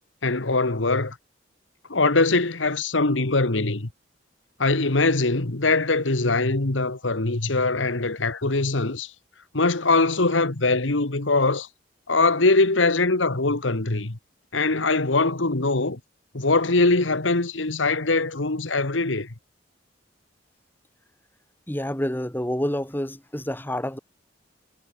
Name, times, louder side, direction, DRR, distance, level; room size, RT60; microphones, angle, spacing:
voice 1, 0.2-1.2 1.9-3.9 4.6-9.1 9.5-11.7 12.1-14.2 14.5-16.0 16.3-19.3, left 3 dB, 90° left, 1.8 m, -22 dB
voice 2, 21.7-24.0, equal, 10° left, 2.5 m, -28 dB
head